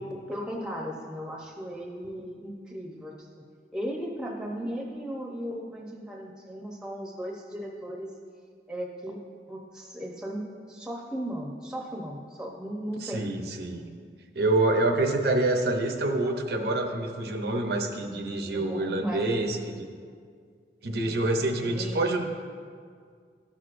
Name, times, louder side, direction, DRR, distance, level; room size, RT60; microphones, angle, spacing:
voice 1, 0.0-3.4 3.7-8.1 8.7-9.2 9.5-10.4 10.7-13.2 18.5-19.3 21.6-22.1, equal, 5° right, -1 dB, 0.8 m, -36 dB
voice 2, 13.0-13.9 14.3-19.9 20.8-22.2, right 2 dB, 65° right, 3 dB, 0.7 m, -27 dB
13.0 x 6.3 x 2.5 m, 2.1 s
head